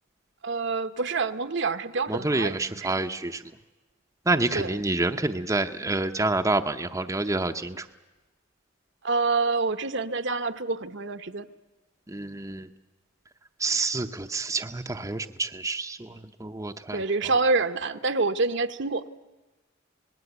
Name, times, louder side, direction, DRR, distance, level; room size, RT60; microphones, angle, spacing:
voice 1, 0.4-3.0 4.5-4.7 9.0-11.5 16.9-19.1, right 3 dB, 60° right, 9 dB, 1.0 m, -27 dB
voice 2, 2.1-3.4 4.3-7.8 12.1-12.7 13.6-16.1 16.4-17.0, right 2 dB, 15° right, 6 dB, 0.7 m, -28 dB
26.0 x 20.0 x 8.1 m, 1.2 s
head